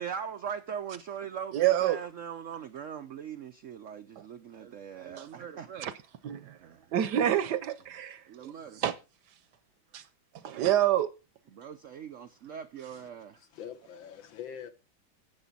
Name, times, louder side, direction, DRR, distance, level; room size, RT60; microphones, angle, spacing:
voice 1, 0.0-5.9 6.6-6.8 8.3-8.8 11.5-13.4, right 8 dB, 85° right, 0.6 m, -40 dB
voice 2, 1.5-2.0 4.2-4.3 5.2-5.3 5.8-5.9 6.2-6.6 6.9-9.0 9.9-10.0 10.4-11.1, right 11 dB, 70° right, 1.1 m, -28 dB
voice 3, 13.4-14.7, left 8 dB, 80° left, 1.9 m, -44 dB
12.0 x 8.2 x 4.1 m
omnidirectional pair, 2.1 m